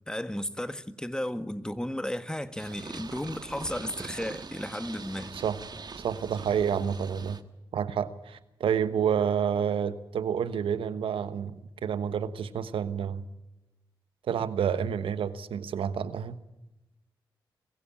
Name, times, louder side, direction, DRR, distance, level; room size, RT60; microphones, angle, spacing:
voice 1, 0.1-5.4, left 1 dB, 10° left, 1.6 m, -34 dB
Purr, 2.6-7.4, right 4 dB, 50° right, 1.5 m, -43 dB
voice 2, 6.0-7.4 7.7-13.2 14.3-16.4, right 8 dB, 85° right, 1.2 m, -29 dB
22.5 x 15.5 x 8.6 m
cardioid pair, 45°, 9 cm